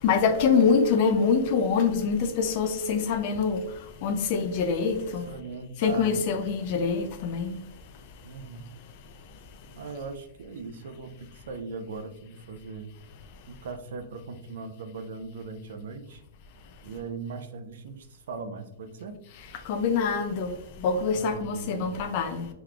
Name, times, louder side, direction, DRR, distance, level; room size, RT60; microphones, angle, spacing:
voice 1, 0.0-3.6 4.0-5.3 5.8-7.6 19.6-22.5, left 5 dB, 40° left, 0.4 m, -25 dB
voice 2, 5.3-6.2 8.2-8.7 9.8-12.9 13.5-16.2 16.8-19.2 21.0-22.2, right 4 dB, 70° right, 0.4 m, -39 dB
3.5 x 3.0 x 2.4 m
hypercardioid pair, 160°, 0 cm